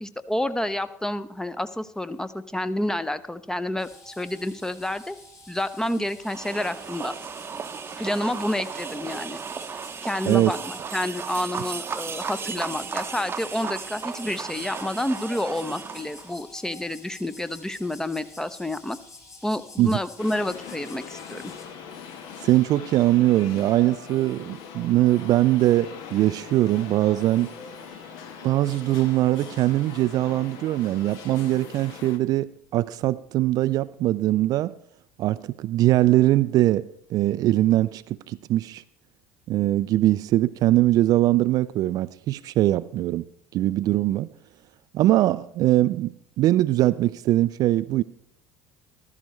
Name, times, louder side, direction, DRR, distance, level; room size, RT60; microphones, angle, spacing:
voice 1, 0.0-5.2 5.5-7.1 8.0-9.4 10.0-19.0 19.4-21.5, left 1 dB, 5° left, 0.7 m, -29 dB
sound 1, 3.8-21.7, left 2 dB, 40° left, 3.7 m, -48 dB
sound 2, 6.2-16.3, right 6 dB, 30° right, 0.8 m, -35 dB
voice 2, 10.3-10.6 19.8-20.0 22.4-27.5 28.4-34.7 35.2-38.8 39.5-43.2 43.5-44.3 44.9-48.0, right 15 dB, 50° right, 0.3 m, -22 dB
sound 3, 20.2-32.2, left 7 dB, 60° left, 1.2 m, -41 dB
14.5 x 13.0 x 3.2 m
hypercardioid pair, 70°, 8 cm